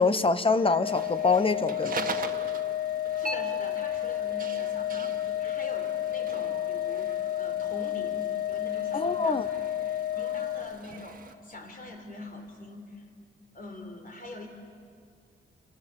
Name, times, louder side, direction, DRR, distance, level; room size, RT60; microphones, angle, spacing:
voice 1, 0.0-2.1 8.9-9.5, left 4 dB, 25° left, 12 dB, 1.1 m, -25 dB
Organ, 0.6-11.2, left 12 dB, 60° left, 0.6 m, -31 dB
sound 1, 0.8-11.3, right 4 dB, 40° right, 1.7 m, -42 dB
voice 2, 3.1-9.9 10.2-13.0 13.5-14.5, left 2 dB, 45° left, 3 dB, 4.6 m, -44 dB
29.5 x 27.5 x 7.2 m, 2.3 s
cardioid pair, 95°, 21 cm